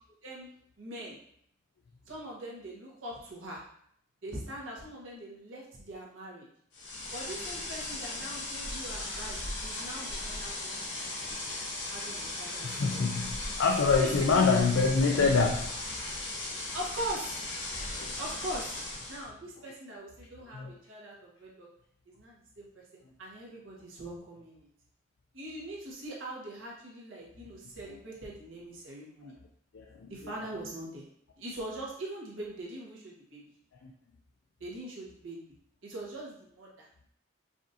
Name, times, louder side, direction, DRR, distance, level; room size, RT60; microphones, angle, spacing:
voice 1, 0.8-1.2 2.1-3.6 4.2-6.5 7.1-11.1 11.9-13.0 14.0-14.5 16.7-17.4 18.2-18.7 19.1-21.7 22.1-22.8 23.2-24.7 25.3-29.3 30.1-31.1 31.4-33.4 34.6-35.5 35.8-36.9, right 1 dB, 80° right, -3 dB, 1.2 m, -42 dB
sound 1, 6.7-19.3, left 2 dB, 60° left, 0.9 m, -37 dB
voice 2, 12.6-15.9 18.0-18.1 19.7-19.8 20.5-20.7 29.7-30.3 33.8-33.9, left 4 dB, 75° left, 2 dB, 0.4 m, -26 dB
4.9 x 2.5 x 2.7 m, 0.68 s
head